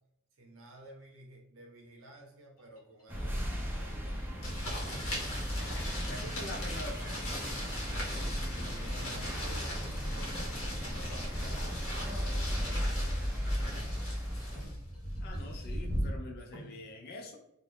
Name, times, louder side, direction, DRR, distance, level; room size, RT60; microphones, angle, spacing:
voice 1, 0.3-4.2 8.5-12.7, right 1 dB, 75° right, 1 dB, 0.7 m, -52 dB
sound 1, 2.6-15.8 16.2-16.8, equal, 20° left, 1.2 m, -55 dB
sound 2, 3.1-14.7, equal, 10° right, 0.4 m, -35 dB
sound 3, 4.4-16.1, equal, 70° left, 0.9 m, -39 dB
voice 2, 5.6-7.2 13.5-13.8 15.2-17.4, left 2 dB, 50° left, 1 dB, 0.4 m, -45 dB
2.5 x 2.0 x 3.2 m, 0.79 s
head